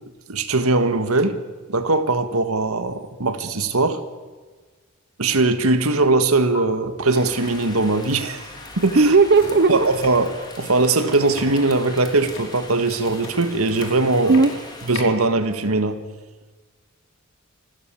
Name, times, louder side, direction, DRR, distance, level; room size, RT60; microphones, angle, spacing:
voice 1, 0.3-1.4 1.7-4.0 5.2-8.4 8.8-9.1 9.7-10.3 10.6-14.4 14.9-16.0, right 3 dB, 85° right, 1.7 m, -20 dB
sound 1, 5.7-6.0 6.3-6.6 8.3-8.4 8.7-15.2, left 2 dB, 65° left, 4.7 m, -38 dB
Rain, 7.0-15.0, left 2 dB, 20° left, 3.7 m, -40 dB
voice 2, 8.9-9.9 14.3-14.5, right 3 dB, 50° right, 0.8 m, -15 dB
27.5 x 14.0 x 8.7 m
head